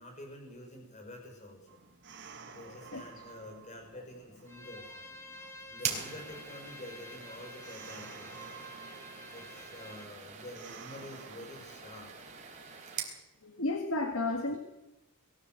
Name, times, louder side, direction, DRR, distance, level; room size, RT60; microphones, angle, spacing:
voice 1, 0.0-1.8 2.5-5.2 5.7-8.7 9.3-12.1, left 1 dB, 35° left, 3 dB, 5.7 m, -48 dB
sound 1, 1.7-12.8, right 5 dB, 55° right, 1.8 m, -53 dB
voice 2, 2.6-3.2 5.4-5.5 13.4-14.6, left 2 dB, 75° left, 5 dB, 1.8 m, -34 dB
Bowed string instrument, 4.5-10.1, left 2 dB, 15° left, 2.4 m, -50 dB
sound 2, 5.8-13.2, right 6 dB, 35° right, 4.2 m, -43 dB
22.0 x 15.5 x 7.7 m, 0.94 s
head